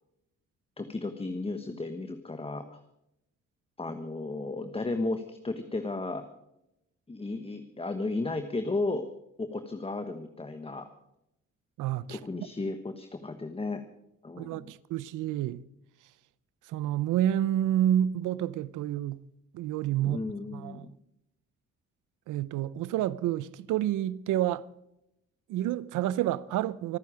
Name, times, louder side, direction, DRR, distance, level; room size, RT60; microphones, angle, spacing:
voice 1, 0.8-2.8 3.8-6.3 7.1-9.1 9.4-10.9 12.1-13.8 14.2-14.7 20.0-20.9, left 2 dB, 20° left, 1.3 m, -34 dB
voice 2, 11.8-12.2 14.4-15.6 16.7-19.2 19.5-20.2 20.5-20.9 22.3-24.7 25.5-27.0, right 12 dB, 85° right, 0.7 m, -29 dB
25.5 x 9.5 x 5.0 m
cardioid pair, 90°, 30 cm